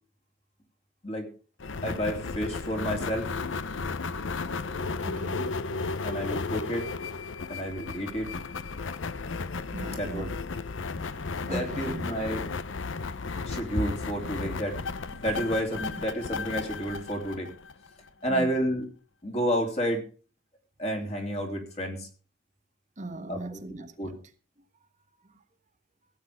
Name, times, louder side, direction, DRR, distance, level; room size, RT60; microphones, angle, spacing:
sound 1, 1.6-18.1, left 4 dB, 85° left, 0.7 m, -34 dB
voice 1, 1.8-3.3 6.0-6.9 7.5-8.3 9.9-10.3 11.3-12.4 13.1-14.8 15.1-17.5 18.2-18.8 19.2-20.0 20.8-22.1 23.3-23.6 24.0-24.1, equal, 35° left, 3.2 m, -30 dB
voice 2, 5.0-5.6 9.7-10.3 11.5-12.1 18.3-18.5 23.0-24.1 25.3-25.4, right 2 dB, 40° right, 1.3 m, -38 dB
16.5 x 8.5 x 4.9 m
head